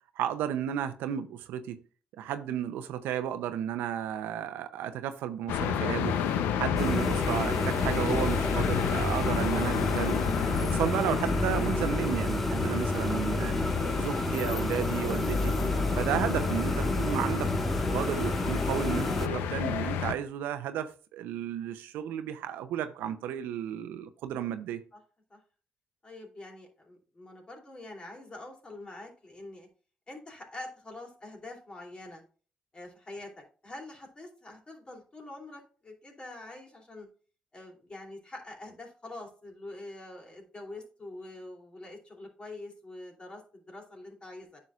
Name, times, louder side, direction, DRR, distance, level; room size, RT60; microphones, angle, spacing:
voice 1, 0.2-1.8 2.2-6.2 6.5-10.2 10.6-13.5 14.0-15.5 16.0-17.5 17.9-24.8, right 10 dB, 85° right, 0.6 m, -33 dB
sound 1, 5.5-20.1, left 8 dB, 85° left, 0.6 m, -31 dB
sound 2, 6.8-19.3, left 1 dB, 5° left, 0.3 m, -30 dB
voice 2, 26.0-29.7 30.1-32.2 32.7-37.1 37.5-44.6, left 2 dB, 30° left, 2.8 m, -45 dB
9.3 x 6.4 x 2.4 m
supercardioid pair, 65°, 3 cm